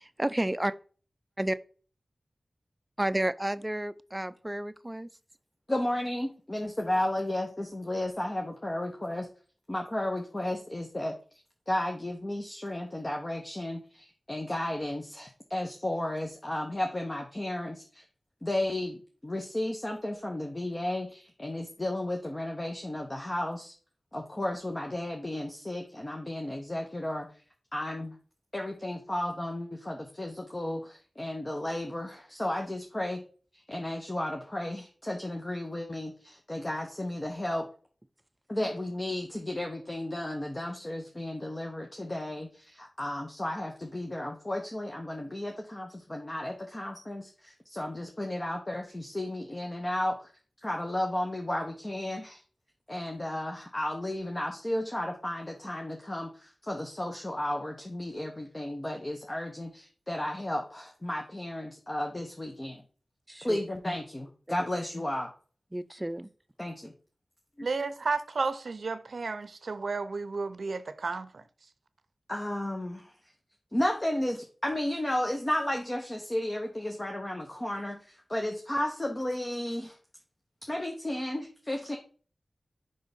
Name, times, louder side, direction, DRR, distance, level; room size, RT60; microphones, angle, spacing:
voice 1, 0.2-0.7 1.4-1.6 3.0-5.1 63.3-63.6 64.5-64.7 65.7-66.3, right 1 dB, 20° right, 0.5 m, -31 dB
voice 2, 5.7-9.3 9.7-11.1 11.7-18.0 18.4-23.7 24.1-27.3 27.7-28.2 28.5-33.2 33.5-37.7 38.5-50.3 50.6-52.4 52.9-62.8 63.4-65.3 66.6-66.9 67.6-67.7 72.3-73.1 73.7-80.0 80.7-82.0, left 1 dB, 30° left, 1.1 m, -33 dB
voice 3, 67.6-71.4, right 4 dB, 80° right, 0.6 m, -32 dB
5.3 x 3.8 x 5.2 m
wide cardioid pair, 55°, 0 cm